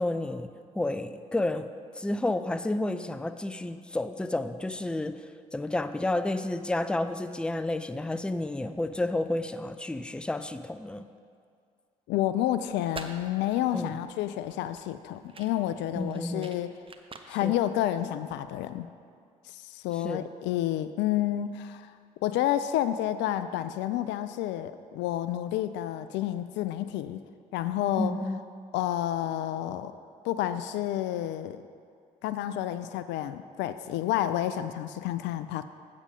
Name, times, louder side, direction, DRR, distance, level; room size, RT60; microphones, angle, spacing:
voice 1, 0.0-1.7 1.9-5.2 5.5-11.0 13.7-13.9 16.0-16.5 17.4-17.5 20.0-20.3 28.0-28.4, left 2 dB, 5° left, 11 dB, 0.4 m, -31 dB
voice 2, 12.1-16.7 17.3-18.9 19.5-21.9 22.2-27.2 27.5-28.2 28.7-30.0 30.2-31.6 32.2-35.6, left 12 dB, 70° left, 12 dB, 0.4 m, -30 dB
sound 1, 12.7-18.7, right 4 dB, 30° right, 0.8 m, -48 dB
8.5 x 7.3 x 5.0 m, 2.3 s
hypercardioid pair, 45°, 19 cm